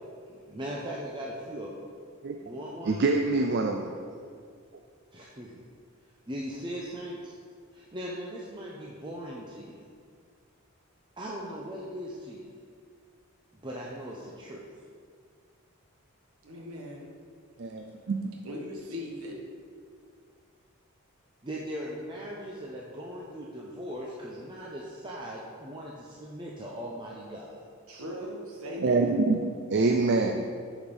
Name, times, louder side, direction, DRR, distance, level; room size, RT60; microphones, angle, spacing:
voice 1, 0.3-1.7 2.4-3.0 5.1-5.6 6.3-7.3 7.7-9.8 11.2-12.5 13.5-14.6 21.4-27.6, equal, 20° right, -4 dB, 0.7 m, -39 dB
voice 2, 2.9-4.0 17.6-18.3 28.8-30.5, right 3 dB, 50° right, 4 dB, 0.4 m, -26 dB
voice 3, 16.4-17.1 18.4-19.4 27.9-29.1, left 1 dB, 75° right, -1 dB, 1.3 m, -38 dB
9.1 x 5.1 x 5.4 m, 2.1 s
head